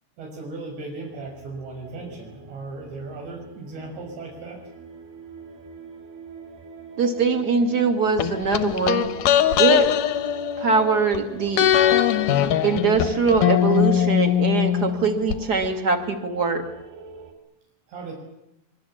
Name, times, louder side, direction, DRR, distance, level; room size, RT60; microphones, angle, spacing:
voice 1, 0.2-4.6 17.9-18.1, right 3 dB, 80° right, 1 dB, 8.3 m, -36 dB
sound 1, 1.1-17.3, right 5 dB, 65° right, 5.4 m, -44 dB
voice 2, 7.0-9.9 10.6-11.7 12.6-16.6, right 4 dB, 30° right, 7 dB, 2.1 m, -22 dB
sound 2, 8.2-11.2 11.6-15.4 15.6-15.7, left 11 dB, 70° left, 2.1 m, -21 dB
25.5 x 24.0 x 8.8 m, 0.84 s
omnidirectional pair, 5.0 m